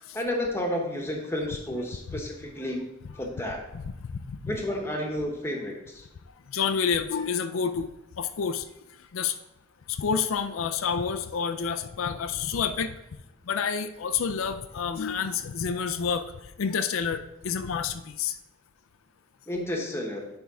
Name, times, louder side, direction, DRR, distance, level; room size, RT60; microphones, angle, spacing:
voice 1, 0.1-2.8 3.2-3.6 4.5-6.1 19.5-20.2, left 1 dB, 10° left, 1 dB, 1.0 m, -31 dB
voice 2, 3.9-4.5 6.5-7.9 8.2-8.7 9.0-9.4 9.9-13.0 13.4-18.4, left 6 dB, 75° left, 8 dB, 0.4 m, -29 dB
10.0 x 3.5 x 4.8 m, 0.91 s
head